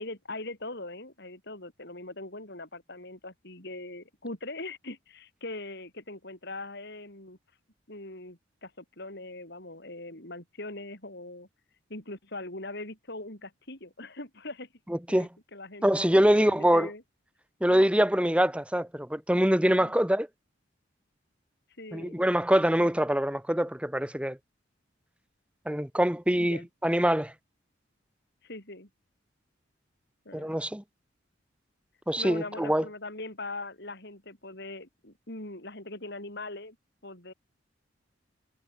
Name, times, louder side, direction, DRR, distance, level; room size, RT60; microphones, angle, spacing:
voice 1, 0.0-7.4 7.9-11.5 11.9-14.7 15.1-15.9 16.3-17.0 19.8-19.9 21.8-22.3 26.4-26.7 28.4-28.9 30.3-30.6 32.2-36.8 37.0-37.3, left 2 dB, 60° left, 7.4 m, -41 dB
voice 2, 14.9-15.3 15.8-16.9 17.6-20.3 21.9-24.4 25.6-27.3 30.3-30.8 32.1-32.8, equal, 5° right, 1.7 m, -24 dB
head